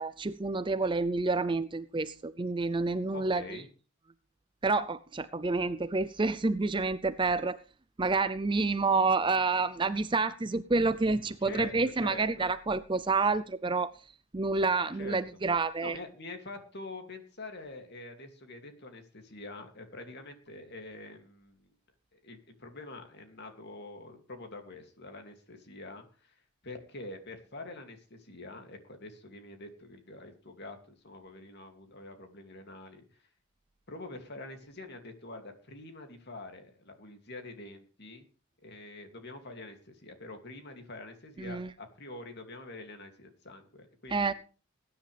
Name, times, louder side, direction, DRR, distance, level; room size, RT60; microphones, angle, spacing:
voice 1, 0.0-3.6 4.6-7.6 8.0-13.9 14.3-16.0 41.4-41.7 44.1-44.3, right 3 dB, 20° right, 0.5 m, -28 dB
voice 2, 3.1-3.7 11.4-12.5 15.0-15.2 15.8-21.7 22.1-33.2 33.9-38.3 38.6-44.3, left 2 dB, 50° left, 2.6 m, -46 dB
20.0 x 10.0 x 3.4 m
head